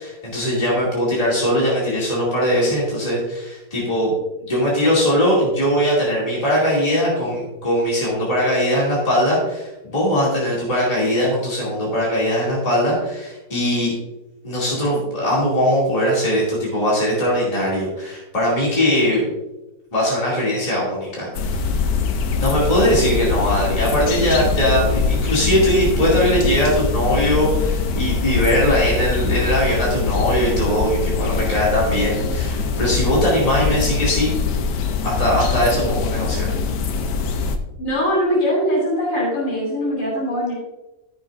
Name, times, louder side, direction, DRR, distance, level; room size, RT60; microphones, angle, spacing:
voice 1, 0.0-4.1 4.5-13.9 14.4-19.3 19.9-21.6 22.4-34.4 35.0-36.5, equal, 20° left, -6 dB, 2.5 m, -20 dB
sound 1, 21.3-37.6, left 4 dB, 70° left, 1.4 m, -22 dB
voice 2, 37.8-40.5, equal, 45° left, -7 dB, 3.4 m, -21 dB
14.0 x 6.9 x 2.5 m, 1.0 s
omnidirectional pair, 2.0 m